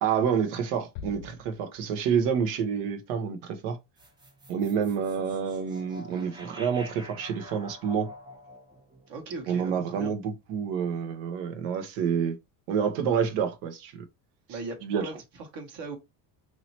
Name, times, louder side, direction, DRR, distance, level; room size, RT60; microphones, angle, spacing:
voice 1, 0.0-3.8 4.5-8.1 9.5-12.4 12.7-14.0 14.5-15.1, right 7 dB, 85° right, 0.9 m, -28 dB
sound 1, 1.0-2.4, left 8 dB, 85° left, 0.5 m, -44 dB
sound 2, 4.0-10.3, equal, 10° right, 0.4 m, -48 dB
voice 2, 9.1-10.1 14.5-16.0, right 3 dB, 60° right, 1.2 m, -39 dB
3.1 x 2.8 x 2.8 m
cardioid pair, 110°, 47 cm